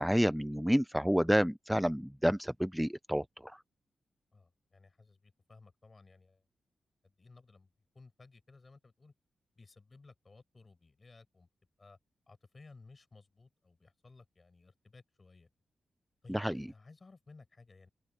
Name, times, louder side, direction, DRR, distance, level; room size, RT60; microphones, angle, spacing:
voice 1, 0.0-3.5 16.3-16.7, equal, ahead, 0.5 m, -29 dB
voice 2, 4.3-6.4 7.0-7.7 7.9-9.1 9.6-11.5 11.8-12.0 12.3-15.5 16.2-17.9, left 3 dB, 35° left, 7.2 m, -58 dB
open air
cardioid pair, 85°, 0 cm